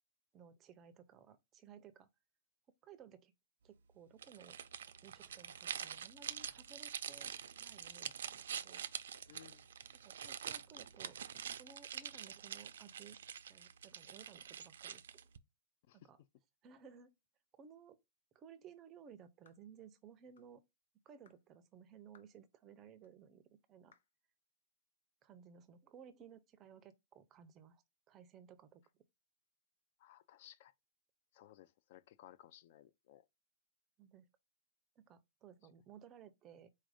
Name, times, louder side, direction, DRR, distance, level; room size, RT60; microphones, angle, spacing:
voice 1, 0.3-2.1 2.8-3.3 3.6-4.6 4.9-7.3 7.6-8.8 9.9-11.2 11.5-13.2 13.5-15.3 15.9-16.2 16.6-17.1 17.6-18.0 18.3-20.6 21.1-23.9 25.2-28.8 34.0-34.3 35.0-36.7, right 7 dB, 20° right, 0.5 m, -58 dB
sound 1, 4.2-15.4, right 8 dB, 80° right, 0.4 m, -46 dB
voice 2, 9.3-9.7 15.9-16.1 30.0-30.7 31.3-33.3, left 12 dB, 50° left, 0.3 m, -60 dB
sound 2, 19.5-19.7 20.4-20.6 21.3-21.4 22.1-22.4 23.0-23.1 23.9-24.1, left 6 dB, 85° left, 0.8 m, -69 dB
4.2 x 2.5 x 4.8 m
hypercardioid pair, 160°, 0 cm